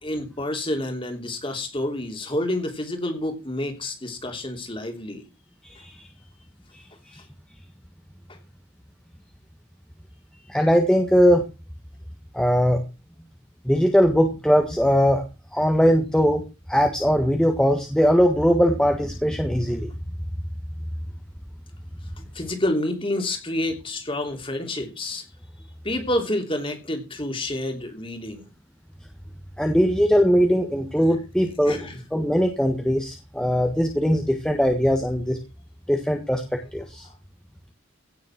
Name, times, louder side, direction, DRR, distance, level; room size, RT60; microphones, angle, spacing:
voice 1, 0.0-5.2 22.2-25.2 25.8-28.4 31.7-32.0, left 1 dB, 25° left, 5 dB, 3.1 m, -28 dB
voice 2, 10.5-11.4 12.3-12.8 13.6-15.2 15.5-16.4 16.7-19.9 29.6-35.4 35.9-36.4 36.7-37.1, equal, 5° left, 3 dB, 1.5 m, -20 dB
17.0 x 7.5 x 6.0 m, 0.30 s
head